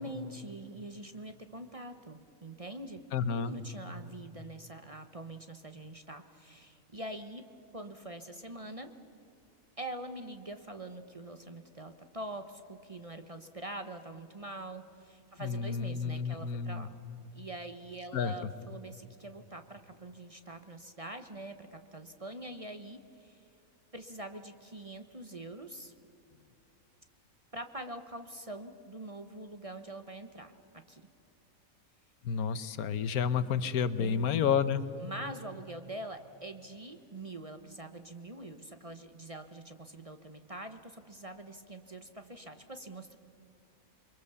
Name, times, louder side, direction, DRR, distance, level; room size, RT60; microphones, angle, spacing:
voice 1, 0.0-3.0 3.3-7.4 7.7-8.9 9.8-16.9 17.3-23.5 23.9-25.9 27.5-30.5 30.9-31.1 34.0-34.3 35.0-43.2, right 1 dB, 30° right, 7 dB, 0.9 m, -44 dB
voice 2, 3.1-3.5 15.4-16.9 18.1-18.3 32.2-34.8, left 7 dB, 85° left, 13 dB, 1.4 m, -30 dB
28.5 x 22.5 x 6.9 m, 2.6 s
omnidirectional pair, 1.5 m